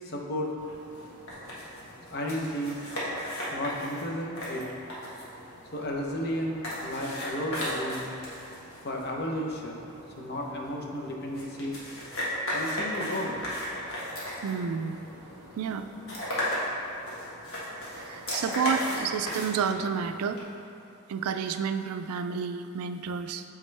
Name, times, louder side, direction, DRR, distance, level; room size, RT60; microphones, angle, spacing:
voice 1, 0.0-0.6 2.1-2.8 3.5-4.6 5.7-8.1 8.8-9.9 10.2-11.8 12.2-13.4, equal, 45° left, 0 dB, 0.7 m, -33 dB
sound 1, 0.6-20.4, left 1 dB, 65° left, 1.4 m, -36 dB
voice 2, 14.4-15.0 15.6-15.9 17.9-20.4 21.1-23.4, right 6 dB, 90° right, 9 dB, 0.3 m, -30 dB
8.3 x 3.6 x 3.3 m, 2.9 s
head